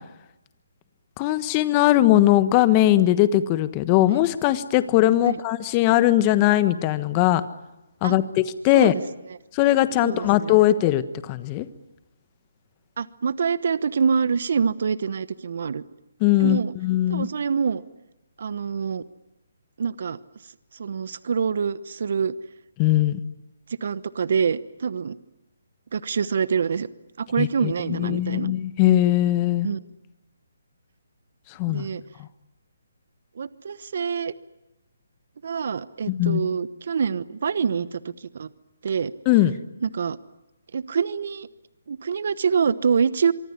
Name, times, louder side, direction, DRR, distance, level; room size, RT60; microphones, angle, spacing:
voice 1, 1.2-7.4 8.0-8.9 9.5-11.7 16.2-17.3 22.8-23.2 27.4-29.7 31.6-31.9 36.1-36.4 39.3-39.6, left 14 dB, 25° left, 13 dB, 1.3 m, -20 dB
voice 2, 10.0-10.5 13.0-15.8 16.4-16.7 17.1-17.8 18.4-19.0 19.8-20.2 20.7-22.4 23.8-25.2 25.9-26.9 27.2-28.5 29.6-29.8 31.7-32.0 33.4-34.3 35.4-38.5 38.8-39.1 39.8-40.2 40.7-41.5 41.9-43.3, right 6 dB, 60° right, 16 dB, 1.0 m, -25 dB
25.0 x 24.0 x 9.8 m, 0.95 s
hypercardioid pair, 150°, 0 cm